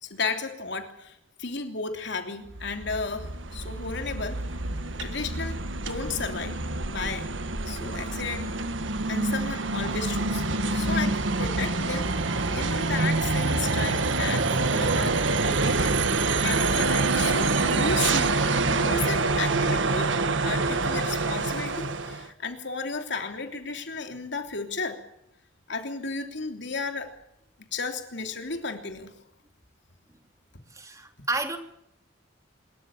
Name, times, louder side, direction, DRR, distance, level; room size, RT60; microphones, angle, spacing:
voice 1, 0.0-4.4 5.0-6.6 6.9-7.3 7.6-8.5 9.1-18.4 18.7-20.1 20.4-25.0 25.7-27.1 27.7-29.1, left 4 dB, 65° left, 6 dB, 3.2 m, -34 dB
sound 1, 2.5-22.3, right 3 dB, 75° right, 1.6 m, -26 dB
voice 2, 30.7-31.6, right 2 dB, 15° right, 6 dB, 2.8 m, -31 dB
26.5 x 14.0 x 8.9 m, 0.80 s
head